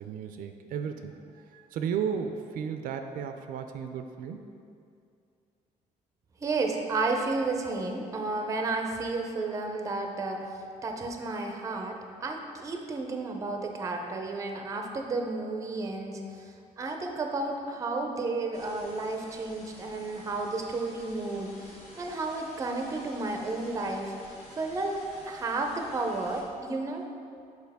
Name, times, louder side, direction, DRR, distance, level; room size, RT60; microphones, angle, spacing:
voice 1, 0.0-4.5, right 7 dB, 80° right, 7 dB, 0.4 m, -34 dB
voice 2, 6.4-10.4 10.8-24.1 24.6-27.1, right 3 dB, 20° right, 3 dB, 0.5 m, -32 dB
sound 1, 18.5-26.4, left 1 dB, 45° left, 1.4 m, -51 dB
6.8 x 4.7 x 3.5 m, 2.4 s
cardioid pair, 160°, 14 cm